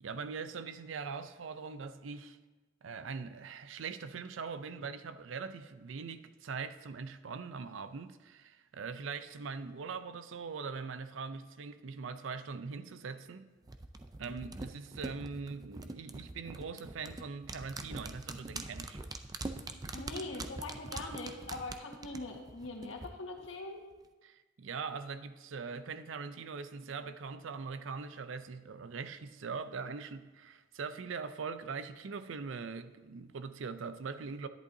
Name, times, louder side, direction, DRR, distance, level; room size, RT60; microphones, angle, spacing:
voice 1, 0.0-2.4 2.8-13.5 14.2-19.0 24.2-34.5, right 5 dB, 75° right, 0.5 m, -42 dB
sound 1, 13.7-23.1 23.4-23.5, right 2 dB, 20° right, 0.4 m, -43 dB
voice 2, 19.9-23.8, left 2 dB, 80° left, 1.5 m, -42 dB
11.0 x 10.5 x 2.7 m
head